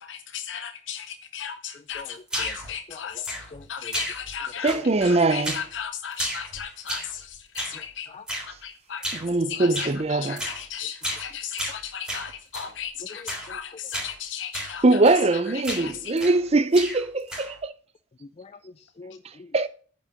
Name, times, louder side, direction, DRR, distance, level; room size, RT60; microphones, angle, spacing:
voice 1, 0.0-3.3 3.7-4.8 5.0-8.1 8.5-9.2 9.5-14.8 15.7-16.1, left 8 dB, 75° left, 0.7 m, -35 dB
voice 2, 1.9-2.5 2.9-3.2 3.5-4.0 7.7-7.8 8.1-8.3 11.7-11.8 13.1-13.6 18.2-19.5, left 4 dB, 35° left, 0.4 m, -45 dB
sound 1, 2.3-2.7 3.2-3.6 3.9-4.4 4.7-5.1 5.4-5.7 6.1-7.2 7.5-7.8 8.3-8.5 9.0-9.3 9.7-10.0 10.4-10.6 11.0-11.3 11.6-12.7 13.3-13.5 13.9-14.1 14.5-14.8 15.0-15.3 15.6-16.4 16.7-17.6, right 1 dB, 5° right, 3.4 m, -33 dB
voice 3, 4.6-5.6 9.1-10.5 14.8-17.7 19.5-19.7, right 2 dB, 35° right, 0.6 m, -22 dB
8.8 x 5.3 x 7.1 m
head